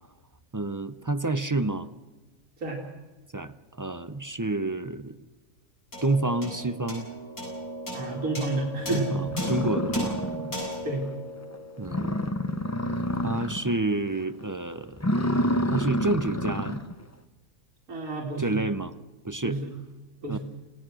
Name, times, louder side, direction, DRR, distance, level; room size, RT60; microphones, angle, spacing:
voice 1, 0.5-1.9 3.3-5.2 6.0-7.1 8.9-10.2 11.8-12.4 13.2-15.1 15.7-16.8 18.4-18.9 19.2-19.6 20.3-20.4, right 2 dB, 25° right, 12 dB, 0.4 m, -29 dB
sound 1, 5.9-12.5, equal, 80° left, 8.4 m, -36 dB
voice 2, 7.9-9.2 10.8-11.0 17.9-18.6 19.4-19.7 20.2-20.4, right 2 dB, 75° right, -1 dB, 3.0 m, -30 dB
sound 2, 8.8-8.9 9.3-10.7 11.1-11.2 11.5-11.6 11.8-13.8 14.1-14.4 14.9-16.9, left 1 dB, 15° left, 0.7 m, -28 dB
29.0 x 18.0 x 6.3 m, 1.2 s
omnidirectional pair, 1.5 m